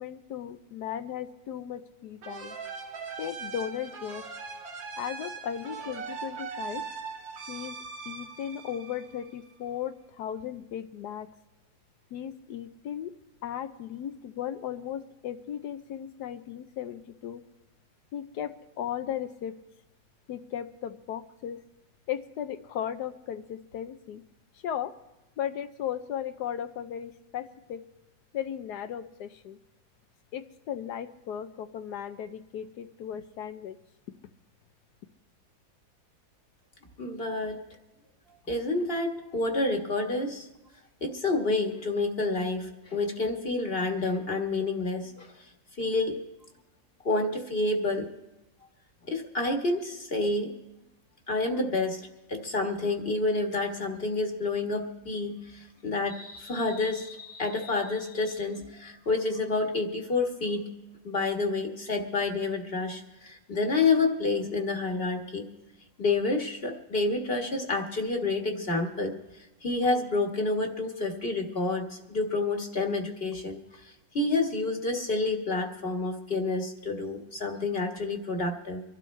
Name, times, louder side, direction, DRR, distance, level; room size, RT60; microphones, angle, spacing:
voice 1, 0.0-2.6 3.2-4.3 5.0-6.8 7.5-7.8 8.1-11.3 12.1-13.1 13.4-17.4 18.1-19.6 20.3-21.6 22.1-24.2 24.6-24.9 25.4-27.8 28.3-29.6 30.3-33.8, left 9 dB, 70° left, 10 dB, 1.1 m, -36 dB
sound 1, 2.2-9.6, right 5 dB, 90° right, 2.1 m, -40 dB
voice 2, 37.0-37.6 38.5-40.5 41.0-45.5 45.8-46.2 47.0-48.1 49.0-50.5 51.3-52.0 52.3-60.7 61.0-65.5 66.0-78.8, left 3 dB, 35° left, 3 dB, 1.5 m, -29 dB
25.0 x 12.0 x 3.2 m, 0.98 s
omnidirectional pair, 2.0 m